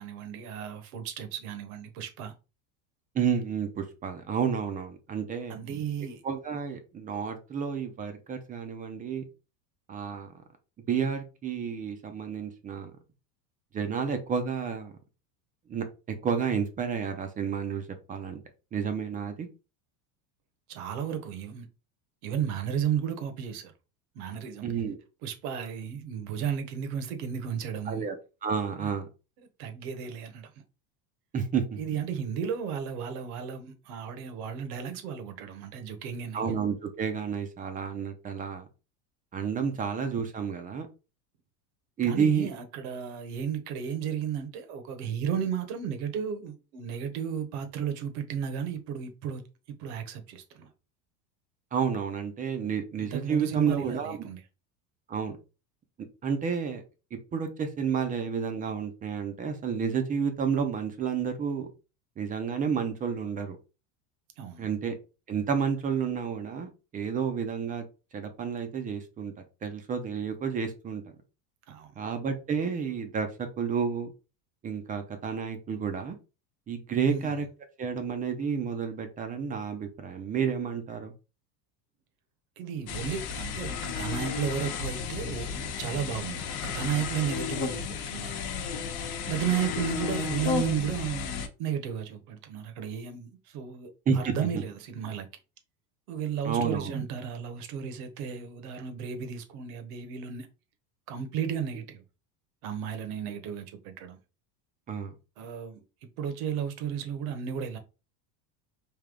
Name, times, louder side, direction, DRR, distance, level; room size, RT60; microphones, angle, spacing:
voice 1, 0.0-2.3 5.5-6.2 20.7-21.7 22.2-23.7 24.1-24.7 25.2-28.1 28.8-28.9 29.6-30.6 31.8-36.5 42.0-49.4 49.8-50.7 53.0-54.4 64.4-64.7 71.7-72.0 77.1-77.4 82.6-88.3 89.3-95.3 96.1-100.5 101.1-102.0 102.6-104.2 105.4-105.8 106.2-107.8, right 8 dB, 70° right, 1.1 m, -34 dB
voice 2, 3.1-5.6 6.2-9.2 9.9-10.3 10.9-12.9 13.7-14.9 15.7-15.8 16.2-18.4 18.7-19.5 24.6-25.0 27.9-28.2 28.4-29.1 31.3-31.8 36.3-38.7 39.3-40.9 42.0-42.5 51.7-54.3 55.1-55.4 56.2-56.8 57.3-61.7 62.2-63.6 64.6-64.9 65.3-67.8 68.1-69.3 69.6-71.0 72.0-74.1 74.6-76.2 76.7-77.5 77.8-81.1 94.1-94.6 96.4-96.9 104.9-105.1, right 6 dB, 20° right, 0.4 m, -30 dB
sound 1, 82.9-91.5, left 6 dB, 55° left, 0.9 m, -33 dB
3.4 x 2.8 x 3.7 m
supercardioid pair, 140°, 45 cm